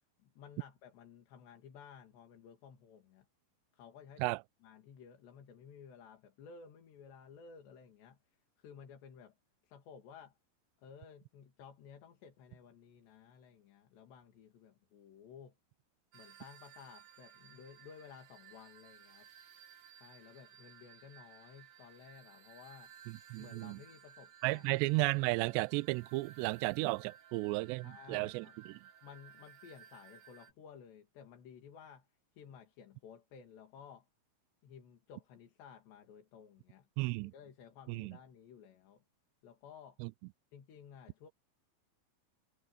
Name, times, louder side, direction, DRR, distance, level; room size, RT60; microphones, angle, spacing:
voice 1, 0.2-3.3 3.7-4.3 4.6-8.2 8.6-9.3 9.6-10.3 10.8-15.5 16.1-19.3 20.0-22.9 23.4-24.7 27.8-28.6 29.0-32.1 32.4-34.1 34.6-36.9 37.2-39.0 39.4-40.0 40.5-41.3, left 7 dB, 65° left, 4.7 m, -55 dB
sound 1, 16.1-30.5, right 9 dB, 60° right, 4.1 m, -58 dB
voice 2, 23.1-23.8 24.4-28.5 37.0-37.3 37.9-38.1 40.0-40.1, right 24 dB, 85° right, 2.5 m, -34 dB
omnidirectional pair, 5.5 m